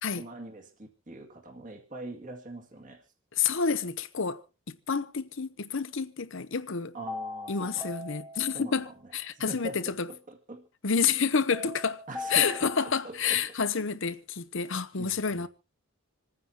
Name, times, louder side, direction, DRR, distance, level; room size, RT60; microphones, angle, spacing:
voice 1, 0.2-3.0 6.9-7.9 8.5-8.9 9.3-10.7 11.1-11.3 12.1-13.4 13.8-14.0 15.0-15.4, right 2 dB, 35° right, 2.1 m, -43 dB
voice 2, 3.4-4.4 4.7-6.9 7.5-10.1 10.8-12.0 12.3-15.5, left 6 dB, 55° left, 0.8 m, -29 dB
sound 1, 7.1-9.0 11.5-13.0, left 2 dB, 5° right, 1.4 m, -40 dB
27.0 x 9.6 x 2.9 m
head